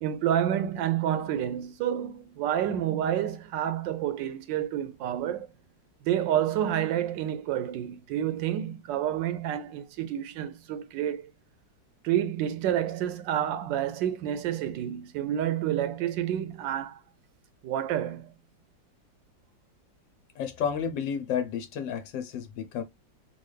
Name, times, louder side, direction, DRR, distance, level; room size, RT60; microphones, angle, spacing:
voice 1, 0.0-5.5 6.0-11.3 12.0-17.0 17.6-18.4, right 10 dB, 80° right, 1.3 m, -29 dB
voice 2, 20.3-22.8, left 7 dB, 80° left, 1.4 m, -31 dB
3.8 x 2.3 x 3.2 m
omnidirectional pair, 2.0 m